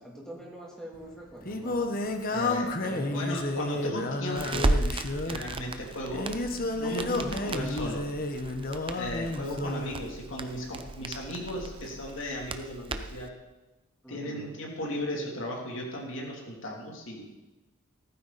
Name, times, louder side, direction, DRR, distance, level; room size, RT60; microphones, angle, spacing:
voice 1, 0.0-2.0 2.8-3.3 14.0-14.5, right 1 dB, 5° left, -3 dB, 3.0 m, -44 dB
Singing, 0.9-10.0, left 2 dB, 45° left, 1.1 m, -31 dB
voice 2, 2.3-4.7 5.3-6.5 6.8-8.1 8.9-13.3 14.1-17.3, equal, 65° left, -1 dB, 3.1 m, -36 dB
Crackle, 4.3-13.3, right 2 dB, 25° right, 0.7 m, -35 dB
15.5 x 14.0 x 4.2 m, 1.1 s
head